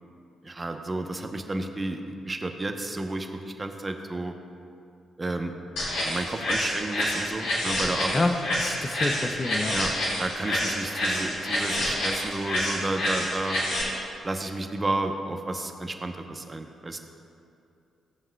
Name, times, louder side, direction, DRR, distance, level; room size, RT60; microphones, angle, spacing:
voice 1, 0.4-4.4 5.2-5.5 6.0-8.2 9.7-9.9 10.2-13.6 14.2-17.0, right 2 dB, 30° right, 5 dB, 0.8 m, -31 dB
sound 1, 5.8-13.8, left 1 dB, 70° left, 2.1 m, -28 dB
voice 2, 8.1-9.7, left 2 dB, 30° left, 6 dB, 0.7 m, -28 dB
17.0 x 7.1 x 2.3 m, 2.6 s
hypercardioid pair, 40°, 0 cm